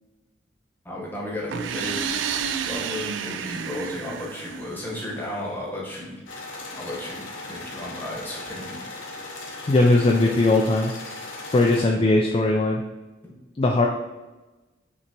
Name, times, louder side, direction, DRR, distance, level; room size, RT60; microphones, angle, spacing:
voice 1, 0.8-2.0 2.7-6.2 6.7-8.8, left 1 dB, 10° left, -4 dB, 1.0 m, -34 dB
sound 1, 1.5-5.3, right 7 dB, 75° right, 0.3 m, -30 dB
sound 2, 6.3-11.9, left 2 dB, 85° left, 0.9 m, -38 dB
voice 2, 9.7-10.9 11.5-12.8 13.6-13.9, left 2 dB, 30° left, 0 dB, 0.3 m, -19 dB
5.9 x 2.8 x 2.9 m, 1.1 s
head